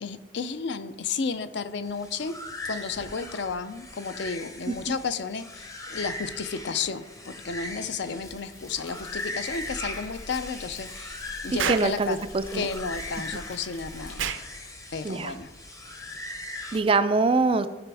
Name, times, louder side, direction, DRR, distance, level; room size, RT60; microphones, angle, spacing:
voice 1, 0.0-2.4 2.6-11.1 11.4-12.2 12.5-14.3 14.9-15.5, left 5 dB, 55° left, 11 dB, 0.5 m, -32 dB
sound 1, 1.8-16.8, left 2 dB, 15° left, 0.7 m, -40 dB
Thunder, 8.2-14.1, left 2 dB, 90° left, 1.7 m, -46 dB
voice 2, 11.5-12.7 15.0-15.3 16.7-17.7, right 3 dB, 25° right, 11 dB, 0.3 m, -24 dB
Explosion, 11.6-11.9 14.2-14.5, right 8 dB, 70° right, 0.6 m, -29 dB
13.5 x 5.0 x 3.4 m, 1.1 s
head